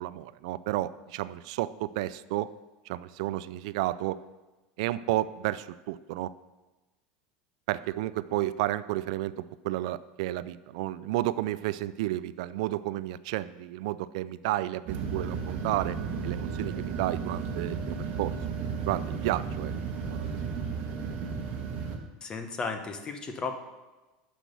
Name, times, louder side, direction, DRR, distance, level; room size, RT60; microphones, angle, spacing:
voice 1, 0.0-2.5 2.9-4.2 4.8-6.3 7.7-16.0 16.2-18.3 18.9-19.7 20.1-20.4, right 15 dB, 70° right, 16 dB, 0.4 m, -31 dB
sound 1, 14.9-22.0, right 5 dB, 45° right, 1.6 m, -34 dB
voice 2, 22.2-23.6, left 4 dB, 25° left, 7 dB, 1.1 m, -34 dB
10.0 x 6.2 x 6.9 m, 1.1 s
supercardioid pair, 150°, 4 cm